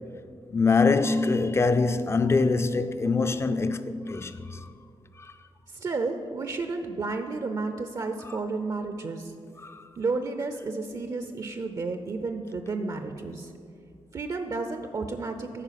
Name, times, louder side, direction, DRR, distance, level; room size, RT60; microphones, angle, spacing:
voice 1, 0.5-4.7 5.2-5.3 9.6-9.8, left 4 dB, 25° left, 0.4 m, -24 dB
voice 2, 5.7-9.3 10.0-13.5 14.1-15.6, right 3 dB, 40° right, 0.5 m, -32 dB
9.8 x 4.7 x 5.7 m
cardioid pair, 105°, 10 cm